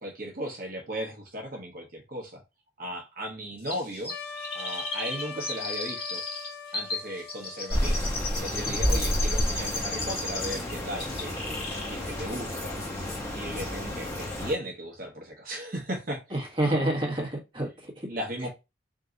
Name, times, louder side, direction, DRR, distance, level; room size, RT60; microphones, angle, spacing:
voice 1, 0.0-2.4 2.8-4.1 4.5-6.2 6.7-8.0 8.4-11.3 11.9-12.7 13.3-16.9 18.1-18.5, equal, 50° right, 1.0 m, -36 dB
Chirp tweet, 3.7-10.7 11.0-11.9 12.2-12.3, left 3 dB, 30° left, 1.8 m, -35 dB
Trumpet, 4.1-8.6, left 5 dB, 75° left, 0.8 m, -42 dB
sound 1, 7.7-14.5, equal, 15° left, 1.0 m, -30 dB
voice 2, 8.6-9.0 16.3-18.1, right 1 dB, 25° right, 1.4 m, -29 dB
3.6 x 2.7 x 3.8 m
head